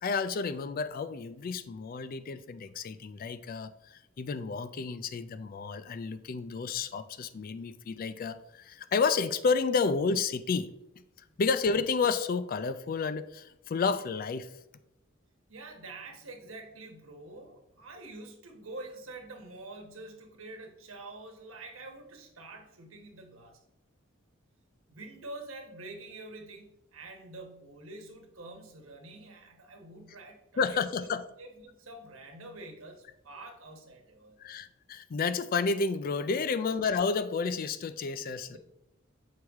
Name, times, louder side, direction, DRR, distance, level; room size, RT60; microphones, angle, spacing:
voice 1, 0.0-3.7 4.2-10.7 11.4-14.5 30.6-31.2 34.4-38.6, left 5 dB, 45° left, 12 dB, 0.4 m, -30 dB
voice 2, 15.5-23.6 24.9-31.1 31.4-34.5 36.6-36.7 38.4-38.6, right 2 dB, 85° right, 3 dB, 1.2 m, -47 dB
6.3 x 4.6 x 3.5 m, 0.86 s
head